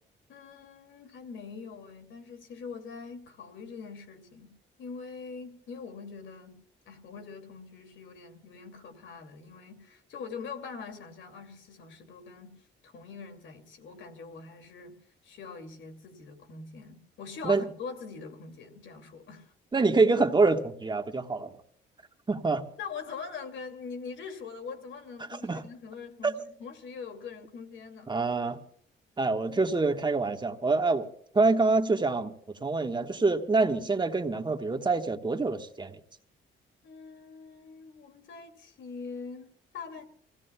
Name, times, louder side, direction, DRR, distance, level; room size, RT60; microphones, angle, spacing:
voice 1, 0.3-4.5 4.8-6.6 6.9-12.6 12.8-15.0 15.2-19.5 22.8-28.2 36.8-40.1, left 5 dB, 70° left, 2.5 m, -43 dB
voice 2, 19.7-21.5 22.3-22.6 25.2-25.6 26.2-26.3 28.1-28.6 29.2-31.1 31.3-32.3 32.6-36.0, right 3 dB, 20° right, 1.3 m, -26 dB
28.0 x 16.5 x 2.3 m
cardioid pair, 90°, 20 cm